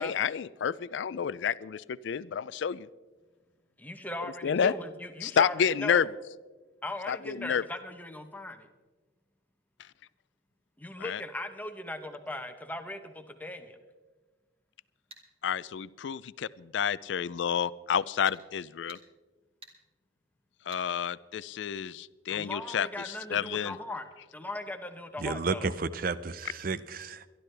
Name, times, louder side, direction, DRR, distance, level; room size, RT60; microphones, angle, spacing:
voice 1, 0.0-2.9 4.4-4.7 5.2-6.1 7.1-7.6 11.0-11.2 15.4-19.0 20.7-23.8, left 7 dB, 70° left, 19 dB, 0.4 m, -30 dB
voice 2, 3.8-6.1 6.8-8.7 10.8-13.8 22.3-24.1 24.3-25.7, left 1 dB, 10° left, 7 dB, 0.9 m, -39 dB
sound 1, 15.1-15.3 18.3-18.4 18.9-19.1 19.6-19.8 20.7-20.9, right 2 dB, 30° right, 1.8 m, -49 dB
voice 3, 25.2-27.3, right 4 dB, 45° right, 15 dB, 0.6 m, -32 dB
23.0 x 12.0 x 3.3 m, 1.3 s
head